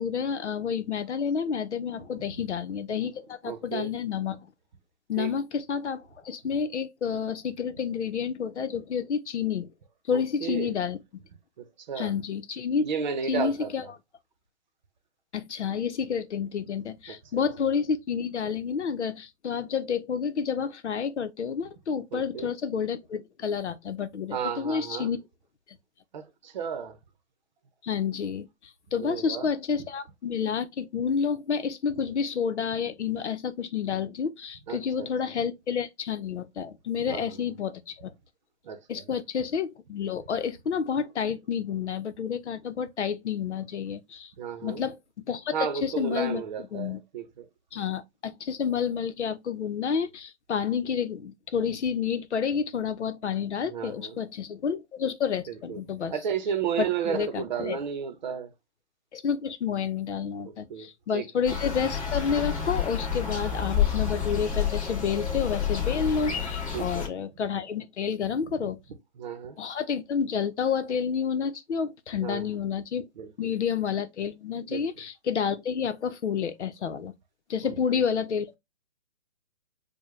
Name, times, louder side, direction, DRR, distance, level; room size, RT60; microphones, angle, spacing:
voice 1, 0.0-4.5 5.1-9.7 10.1-11.0 12.0-12.8 13.3-13.8 15.3-25.2 27.8-28.5 28.9-38.1 38.9-44.3 44.6-45.5 45.8-46.4 46.7-47.0 47.7-56.1 56.8-57.8 59.1-68.8 69.6-73.1 73.4-77.1 77.5-78.6, left 7 dB, 85° left, 0.7 m, -29 dB
voice 2, 3.4-3.9 5.2-5.3 10.1-10.7 11.9-12.1 12.8-13.9 17.1-17.4 22.1-22.5 24.3-25.1 26.1-27.0 29.0-29.5 34.7-35.1 37.0-37.3 38.6-39.1 44.4-44.8 45.5-47.5 53.6-54.2 55.5-55.8 56.1-58.5 60.7-60.9 61.1-61.3 66.7-67.2 68.5-68.7 69.2-69.6 72.2-72.6 73.2-73.5 74.7-74.9 77.9-78.0, right 7 dB, 40° right, 0.7 m, -33 dB
sound 1, 61.4-67.1, left 8 dB, 30° left, 1.5 m, -29 dB
4.6 x 2.2 x 3.1 m
hypercardioid pair, 155°, 34 cm